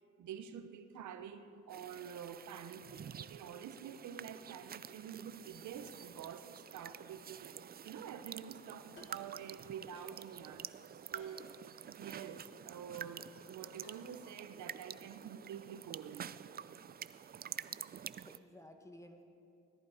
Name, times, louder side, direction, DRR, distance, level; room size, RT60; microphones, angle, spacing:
voice 1, 0.2-11.4 11.9-16.7, right 8 dB, 75° right, 0.9 m, -48 dB
sound 1, 1.7-18.4, right 8 dB, 30° right, 0.4 m, -49 dB
sound 2, 8.9-9.2 9.9-10.1 11.1-11.3 12.1-12.2 12.9-13.1 13.8-14.1, left 2 dB, 40° left, 4.0 m, -58 dB
voice 2, 17.7-19.2, left 1 dB, 10° left, 1.4 m, -56 dB
18.0 x 14.0 x 5.0 m
cardioid pair, 90°, 30 cm